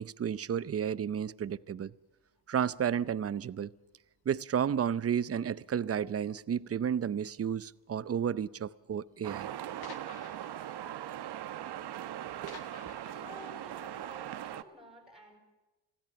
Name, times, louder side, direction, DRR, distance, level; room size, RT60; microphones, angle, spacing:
voice 1, 0.0-1.9 2.5-3.7 4.3-9.5 12.4-12.6, right 8 dB, 35° right, 0.7 m, -32 dB
sound 1, 2.2-2.4 3.2-3.6 3.8-4.3 4.7-4.9 5.4-5.5 5.7-5.8 6.6-7.1 7.9-8.0 8.3-8.4 8.8-8.9 9.2-9.3 9.8-14.5, left 8 dB, 60° left, 1.8 m, -55 dB
sound 2, 9.2-14.6, right 11 dB, 65° right, 1.1 m, -40 dB
voice 2, 13.1-15.4, left 1 dB, ahead, 6.5 m, -52 dB
26.5 x 17.0 x 6.9 m
cardioid pair, 130°, 42 cm